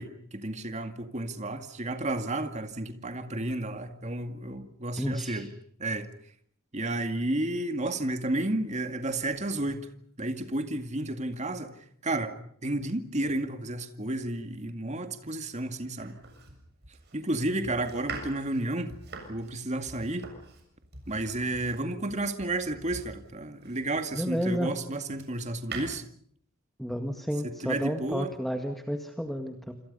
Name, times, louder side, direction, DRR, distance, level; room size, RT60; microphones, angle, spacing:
voice 1, 0.0-5.5 5.8-6.1 6.7-9.8 10.2-11.7 12.0-12.4 12.6-16.2 17.1-18.9 19.3-20.3 21.1-26.0 27.4-28.3, right 2 dB, 35° right, 2.2 m, -32 dB
voice 2, 4.9-5.5 24.1-24.7 26.8-29.7, equal, ahead, 1.9 m, -31 dB
Domestic sounds home sounds, 16.0-24.2 24.7-25.9, right 4 dB, 50° right, 7.2 m, -44 dB
27.5 x 27.0 x 5.5 m
head